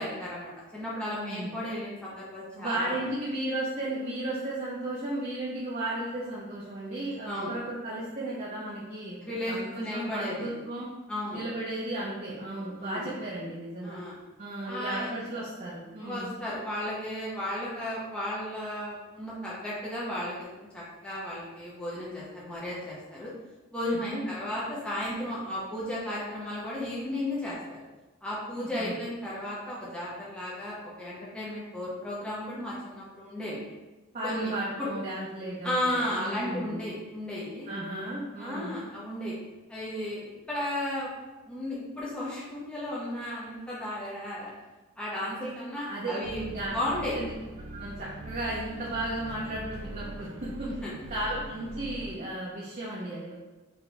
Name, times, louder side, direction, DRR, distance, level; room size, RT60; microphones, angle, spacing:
voice 1, 0.0-3.1 7.3-7.5 9.2-10.5 11.1-11.4 12.8-13.1 13.8-14.2 14.7-15.1 16.0-23.3 23.7-27.8 28.2-33.6 34.2-34.5 34.8-34.9 35.6-37.7 38.4-39.4 39.7-41.1 41.5-44.5 45.0-47.2 50.8-50.9, left 1 dB, 5° left, -8 dB, 0.7 m, -34 dB
voice 2, 1.1-1.5 2.5-10.9 11.3-14.0 14.4-16.3 23.8-24.2 28.6-28.9 34.1-36.8 37.7-38.7 45.9-46.2 46.5-46.7 47.1-47.3 47.7-50.7 51.1-53.3, right 1 dB, 35° right, -7 dB, 0.7 m, -34 dB
sound 1, 46.2-52.2, right 1 dB, 75° right, 0.4 m, -42 dB
4.2 x 2.8 x 3.4 m, 1.1 s
head